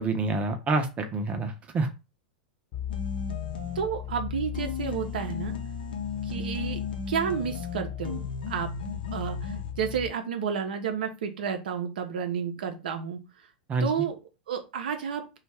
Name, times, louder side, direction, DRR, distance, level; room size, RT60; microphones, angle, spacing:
voice 1, 0.0-1.9 13.7-13.9, right 3 dB, 25° right, 6 dB, 0.7 m, -27 dB
sound 1, 2.7-10.1, left 10 dB, 40° left, 1.0 m, -37 dB
sound 2, 2.9-4.1 4.5-9.7, left 4 dB, 80° left, 0.6 m, -36 dB
voice 2, 3.8-5.5 6.3-6.8 7.1-8.7 9.1-13.2 13.8-14.1 14.5-15.2, right 7 dB, 70° right, 6 dB, 0.6 m, -31 dB
2.5 x 2.3 x 3.2 m, 0.28 s
hypercardioid pair, 100°, 5 cm